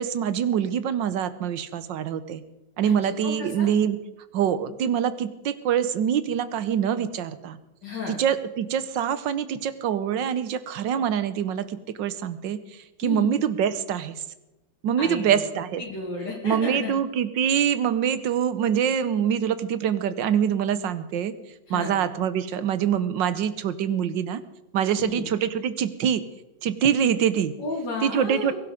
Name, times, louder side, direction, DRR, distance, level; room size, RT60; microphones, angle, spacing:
voice 1, 0.0-2.4 2.8-4.0 4.3-7.6 8.1-14.2 14.8-15.8 16.4-21.3 21.7-24.4 24.7-26.2 26.6-27.5 28.0-28.5, right 8 dB, 80° right, 14 dB, 1.6 m, -25 dB
voice 2, 2.8-3.7 7.8-8.2 13.0-13.3 15.0-15.4 15.8-16.9 21.7-22.0 24.9-25.3 27.6-28.5, left 3 dB, 75° left, -5 dB, 3.3 m, -32 dB
22.0 x 12.0 x 5.1 m, 1.0 s
omnidirectional pair, 2.0 m